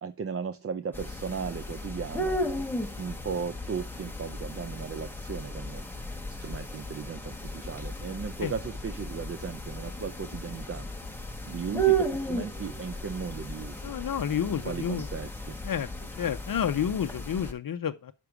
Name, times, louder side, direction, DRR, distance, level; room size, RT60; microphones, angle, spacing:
voice 1, 0.0-2.4 3.0-5.8 6.4-10.9 11.5-13.9 14.5-15.5, right 6 dB, 30° right, 0.4 m, -36 dB
sound 1, 0.9-17.5, right 3 dB, 5° left, 1.0 m, -34 dB
voice 2, 13.8-15.1 15.6-15.9 16.2-18.1, left 8 dB, 45° left, 0.6 m, -30 dB
6.6 x 6.0 x 4.7 m
wide cardioid pair, 120°, 46 cm